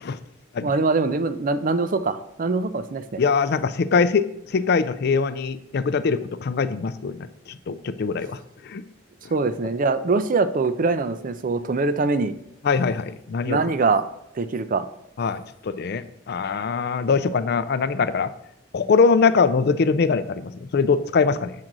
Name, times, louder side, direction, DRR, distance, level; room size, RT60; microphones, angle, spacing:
voice 1, 0.6-3.2 9.3-12.3 13.4-14.0 14.3-14.9, right 3 dB, 45° right, 12 dB, 0.5 m, -23 dB
voice 2, 3.2-8.4 8.6-8.8 9.2-9.3 12.6-13.6 15.2-18.3 18.7-21.5, left 5 dB, 55° left, 13 dB, 0.4 m, -22 dB
7.5 x 3.8 x 6.0 m, 0.80 s
head